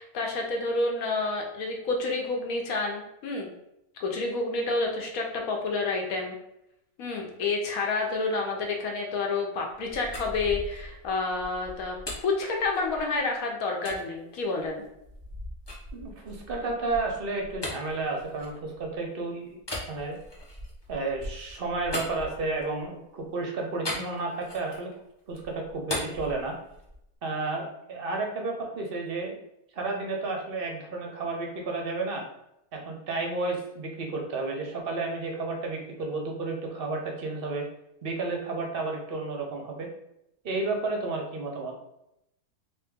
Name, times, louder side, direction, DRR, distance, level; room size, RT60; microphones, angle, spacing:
voice 1, 0.0-3.5 4.0-6.4 7.0-14.8, left 3 dB, 75° left, 1 dB, 1.2 m, -29 dB
sound 1, 9.7-13.2 13.8-14.0 14.6-19.0 19.6-22.8 23.8-24.9 25.3-27.1, left 1 dB, 30° left, 0.5 m, -39 dB
voice 2, 15.9-19.6 19.9-20.2 20.9-24.9 25.3-26.5 27.2-29.3 29.7-32.2 32.7-37.7 38.0-39.9 40.4-41.7, right 3 dB, 55° right, 1 dB, 0.7 m, -32 dB
3.4 x 2.8 x 3.5 m, 0.82 s
omnidirectional pair, 1.6 m